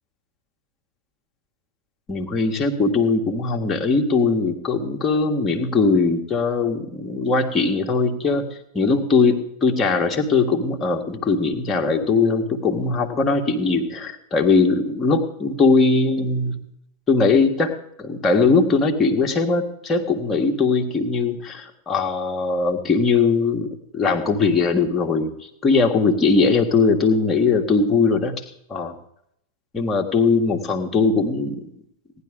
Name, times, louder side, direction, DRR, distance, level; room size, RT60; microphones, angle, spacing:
voice 1, 2.1-16.5 17.1-23.7 23.9-28.4 28.7-28.9 29.7-31.6, left 4 dB, 20° left, 3 dB, 1.8 m, -20 dB
17.5 x 11.0 x 3.8 m, 0.72 s
figure-of-eight pair, 90°, 0 cm